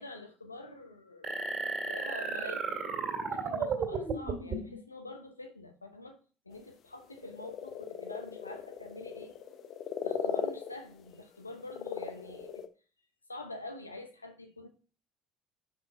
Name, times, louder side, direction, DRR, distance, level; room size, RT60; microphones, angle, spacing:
voice 1, 0.0-1.4 1.9-2.8 3.3-6.2 6.5-9.3 10.0-12.6 13.3-14.7, left 2 dB, 90° left, 0.8 m, -46 dB
sound 1, 1.2-4.8, right 4 dB, 40° right, 2.0 m, -34 dB
sound 2, 6.5-6.6 7.0-11.4 11.6-12.7, left 8 dB, 50° left, 0.7 m, -38 dB
5.7 x 5.3 x 4.2 m
figure-of-eight pair, 55°, 0 cm